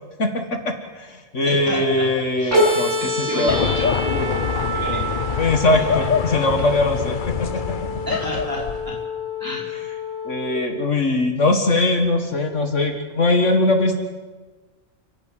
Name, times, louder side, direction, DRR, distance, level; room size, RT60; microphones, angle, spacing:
voice 1, 0.2-3.6 5.4-7.5 10.3-14.0, left 2 dB, 65° left, 5 dB, 2.1 m, -21 dB
voice 2, 1.4-2.1 2.4-2.5 3.0-5.1 5.8-6.4 8.1-9.0 9.4-9.7, left 1 dB, 15° right, -3 dB, 5.4 m, -30 dB
sound 1, 2.5-10.5, left 1 dB, 65° right, 7.1 m, -26 dB
sound 2, 3.5-9.0, left 6 dB, 45° left, 0.8 m, -25 dB
29.5 x 12.0 x 9.0 m, 1.3 s
omnidirectional pair, 1.4 m